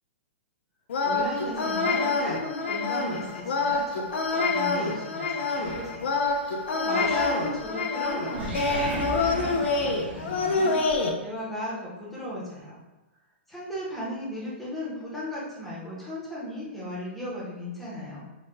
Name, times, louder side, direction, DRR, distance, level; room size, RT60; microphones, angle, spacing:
sound 1, 0.9-11.1, left 3 dB, 70° left, 0.5 m, -27 dB
voice 1, 1.0-6.1 6.4-12.8 13.5-18.3, left 1 dB, ahead, -8 dB, 0.7 m, -36 dB
Animal, 5.6-6.4 7.0-7.7 8.0-11.0, right 3 dB, 55° right, 0.7 m, -36 dB
3.2 x 2.1 x 3.1 m, 1.0 s
hypercardioid pair, 170°, 7 cm